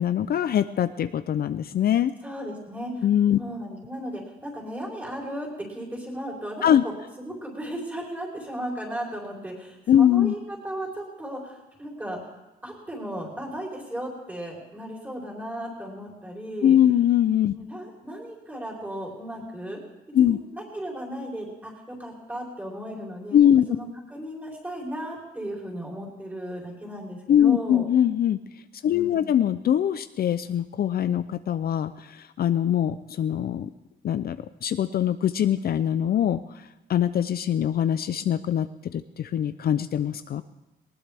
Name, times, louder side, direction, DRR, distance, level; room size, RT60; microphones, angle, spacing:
voice 1, 0.0-2.1 3.0-3.4 6.6-6.8 9.9-10.3 16.6-17.5 20.1-20.4 23.3-23.7 27.3-28.4 28.8-33.7 34.0-34.4 34.6-36.4 36.9-40.4, left 10 dB, 60° left, 11 dB, 0.5 m, -22 dB
voice 2, 2.2-3.1 3.4-12.3 12.6-16.8 17.5-19.8 20.3-27.9 28.8-29.3, equal, 10° right, -2 dB, 3.8 m, -36 dB
19.5 x 19.5 x 3.5 m, 1.0 s
wide cardioid pair, 170°, 18 cm